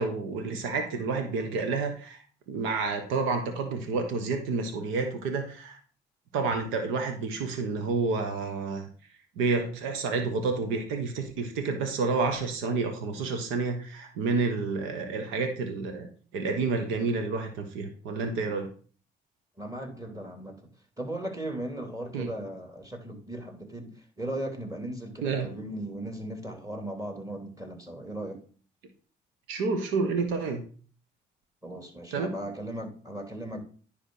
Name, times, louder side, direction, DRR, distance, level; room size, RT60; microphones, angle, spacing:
voice 1, 0.0-2.2 2.5-5.8 6.3-8.9 9.4-18.7 22.1-22.3 25.2-25.5 29.5-30.6 32.1-32.3, right 4 dB, 85° right, 6 dB, 1.2 m, -29 dB
voice 2, 19.6-20.7 21.0-28.4 31.6-33.6, right 1 dB, 15° right, 4 dB, 2.9 m, -37 dB
10.0 x 3.5 x 6.3 m, 0.42 s
supercardioid pair, 55°, 20 cm